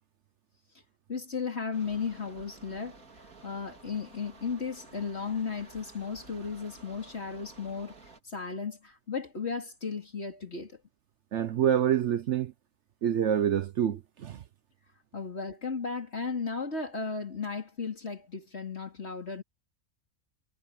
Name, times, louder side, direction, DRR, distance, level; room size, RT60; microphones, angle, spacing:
voice 1, 1.1-3.0 3.4-8.0 8.2-10.8 15.1-19.4, left 5 dB, 50° left, 3.6 m, -35 dB
sound 1, 1.7-8.2, right 3 dB, 80° right, 3.4 m, -53 dB
voice 2, 11.3-12.5 13.0-14.4, right 9 dB, 60° right, 0.9 m, -27 dB
omnidirectional pair, 1.5 m